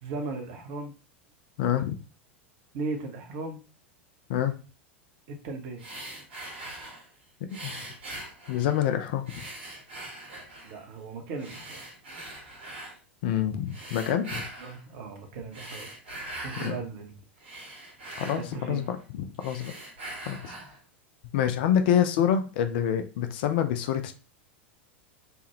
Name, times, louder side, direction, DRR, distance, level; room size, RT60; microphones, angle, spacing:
voice 1, 0.0-0.9 2.7-3.6 5.3-5.8 10.6-11.8 14.6-15.9 16.4-17.1 18.4-18.8, right 3 dB, 45° right, 4 dB, 0.8 m, -37 dB
voice 2, 1.6-2.0 4.3-4.5 7.5-7.7 8.5-9.4 13.2-14.4 16.6-16.8 18.2-19.7 20.2-20.5 21.3-24.1, left 9 dB, 50° left, 8 dB, 0.4 m, -27 dB
sound 1, 5.8-7.1 7.5-8.9 9.3-10.8 11.4-13.0 13.7-14.8 15.4-16.8 17.2-19.0 19.3-20.8, right 1 dB, 65° right, 1.3 m, -42 dB
3.3 x 2.2 x 3.0 m, 0.33 s
figure-of-eight pair, 85°, 6 cm